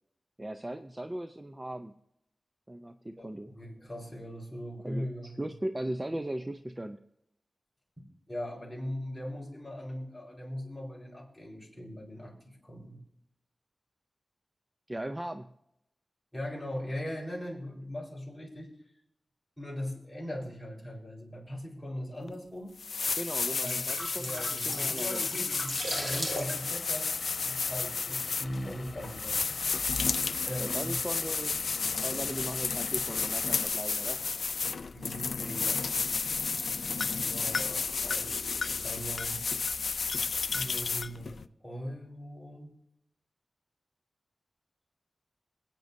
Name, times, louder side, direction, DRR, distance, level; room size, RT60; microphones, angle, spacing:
voice 1, 0.4-1.9 2.7-3.5 4.8-7.0 14.9-15.5 23.2-25.2 30.6-34.2, right 1 dB, 20° right, 7 dB, 0.5 m, -38 dB
voice 2, 3.2-5.4 8.3-13.0 16.3-18.7 19.6-22.8 23.6-23.9 24.2-27.1 27.4-29.4 30.4-31.0 34.9-35.8 37.0-39.4 40.4-42.7, equal, 10° left, -4 dB, 4.5 m, -40 dB
sound 1, 22.3-22.4 22.8-41.4, left 5 dB, 80° left, 0.4 m, -32 dB
sound 2, 23.2-28.1 28.4-28.6, right 1 dB, 50° right, 2.1 m, -38 dB
Vehicle / Engine, 25.7-33.7, left 3 dB, 65° left, 1.3 m, -48 dB
27.0 x 9.1 x 2.7 m, 0.80 s
wide cardioid pair, 115°, 0 cm